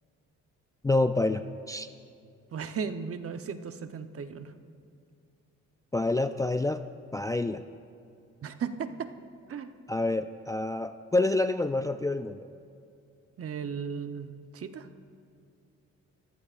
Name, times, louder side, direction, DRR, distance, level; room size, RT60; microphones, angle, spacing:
voice 1, 0.8-1.9 5.9-6.8 7.1-7.6 9.9-12.5, left 2 dB, 10° left, 9 dB, 0.3 m, -27 dB
voice 2, 2.5-4.5 8.4-9.1 9.5-9.7 13.4-14.9, right 6 dB, 50° right, 8 dB, 0.9 m, -36 dB
28.5 x 15.5 x 2.5 m, 2.5 s
cardioid pair, 90°, 30 cm